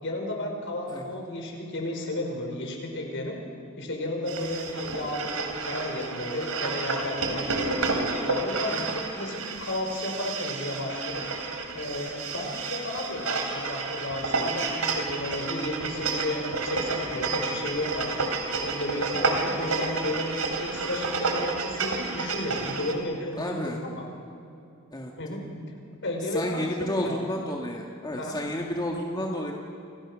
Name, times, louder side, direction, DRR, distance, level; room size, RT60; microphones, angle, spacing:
voice 1, 0.0-3.4 3.8-7.7 8.2-11.2 11.7-18.3 18.6-20.3 20.6-24.1 25.2-25.4 26.0-27.3 28.2-28.4, left 1 dB, 60° left, 2 dB, 5.2 m, -33 dB
sound 1, 4.3-22.9, right 3 dB, 90° right, 3.6 m, -30 dB
voice 2, 23.4-23.8 24.9-25.1 26.3-29.5, left 1 dB, 20° left, 0 dB, 1.9 m, -31 dB
30.0 x 26.5 x 6.4 m, 2.5 s
head